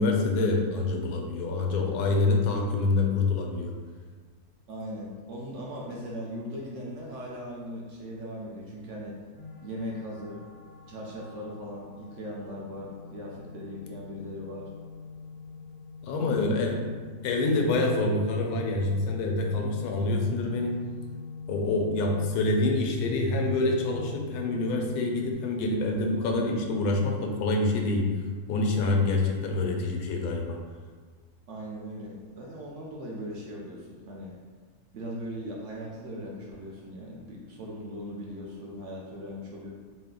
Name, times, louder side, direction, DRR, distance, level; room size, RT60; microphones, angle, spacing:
voice 1, 0.0-3.7 16.0-16.8 17.2-20.8 21.5-28.1 28.5-30.6, left 2 dB, 90° left, 2 dB, 1.1 m, -26 dB
voice 2, 4.7-9.2 9.6-10.4 10.9-14.7 16.2-16.8 31.5-34.4 34.9-39.7, equal, 65° right, -3 dB, 0.8 m, -39 dB
sound 1, 9.3-25.3, left 5 dB, 45° right, 1.1 m, -43 dB
4.1 x 2.1 x 3.6 m, 1.5 s
omnidirectional pair, 1.6 m